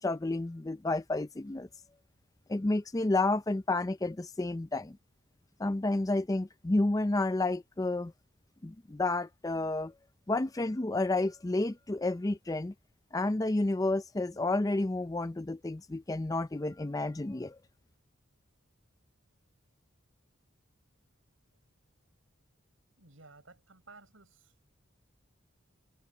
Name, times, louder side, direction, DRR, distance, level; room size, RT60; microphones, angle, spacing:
voice 1, 0.0-1.7 2.5-5.0 5.6-8.1 8.6-9.9 10.3-12.7 13.1-17.6, left 2 dB, 15° left, 0.4 m, -30 dB
voice 2, 23.0-24.5, right 3 dB, 75° right, 5.6 m, -55 dB
head